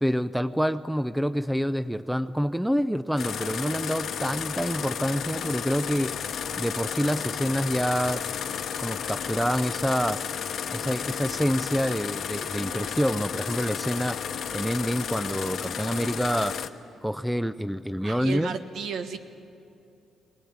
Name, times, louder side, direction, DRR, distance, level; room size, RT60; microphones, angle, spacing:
voice 1, 0.0-6.1 6.6-8.2 8.8-10.2 10.7-14.2 14.5-16.5 17.0-18.6, equal, ahead, 13 dB, 0.5 m, -27 dB
sound 1, 3.2-16.7, left 8 dB, 65° left, 0.9 m, -32 dB
voice 2, 18.0-19.2, right 6 dB, 70° right, 8 dB, 1.4 m, -33 dB
20.0 x 19.5 x 8.7 m, 2.8 s
cardioid pair, 90°, 0 cm